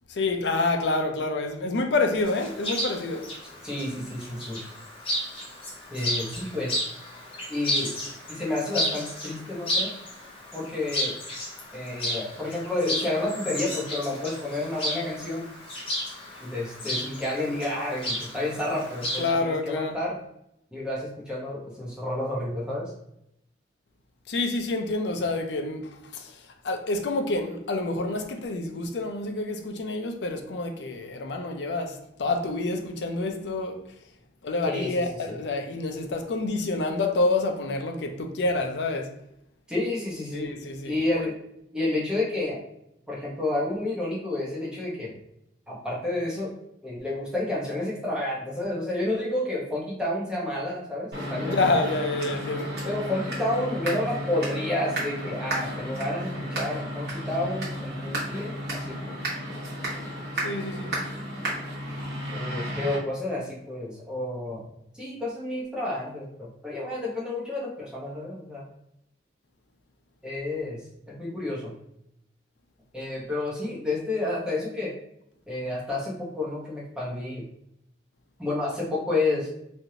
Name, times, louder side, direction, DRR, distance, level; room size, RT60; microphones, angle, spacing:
voice 1, 0.1-3.3 19.2-20.0 24.3-33.8 34.4-39.1 40.3-41.3 51.5-52.8 60.4-61.0, left 2 dB, 75° left, 0.5 m, -28 dB
Chirp tweet, 2.2-19.3, left 1 dB, 30° left, 0.8 m, -33 dB
voice 2, 3.6-4.6 5.9-6.7 7.5-7.9 8.3-9.9 10.5-11.1 11.7-15.5 16.4-20.2 20.7-22.9 34.6-34.9 35.3-35.4 39.7-40.6 40.8-41.4 41.7-42.6 43.1-45.1 45.7-46.5 46.8-51.9 52.8-59.1 62.3-64.6 64.9-68.6 70.2-70.8 71.2-71.7 72.9-74.9 75.5-77.4 78.4-79.5, left 2 dB, 5° right, 0.8 m, -30 dB
sound 1, 51.1-63.0, equal, 65° right, 1.1 m, -33 dB
3.2 x 2.5 x 2.7 m
head